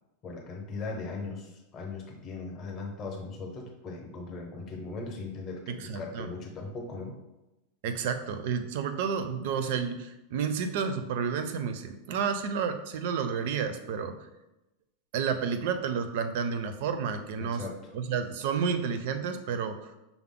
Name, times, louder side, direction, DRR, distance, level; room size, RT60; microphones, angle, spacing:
voice 1, 0.2-7.2 17.4-17.8, left 3 dB, 25° left, 0 dB, 0.7 m, -39 dB
voice 2, 5.7-6.3 7.8-14.2 15.1-17.6 17.9-19.9, right 6 dB, 55° right, 8 dB, 0.4 m, -31 dB
5.7 x 2.0 x 3.6 m, 0.96 s
supercardioid pair, 170°, 0 cm